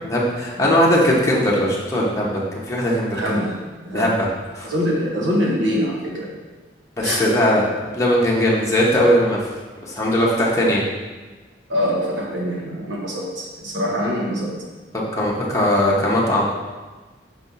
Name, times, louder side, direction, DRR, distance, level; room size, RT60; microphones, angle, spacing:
voice 1, 0.0-3.2 3.9-4.3 4.5-4.7 7.0-7.6 7.9-9.5 9.8-10.8 14.9-16.5, equal, 15° left, -5 dB, 1.0 m, -19 dB
voice 2, 0.6-0.9 3.1-4.1 4.6-6.3 7.0-7.2 11.7-14.6, equal, 80° right, -3 dB, 1.5 m, -24 dB
5.5 x 3.6 x 5.4 m, 1.3 s
head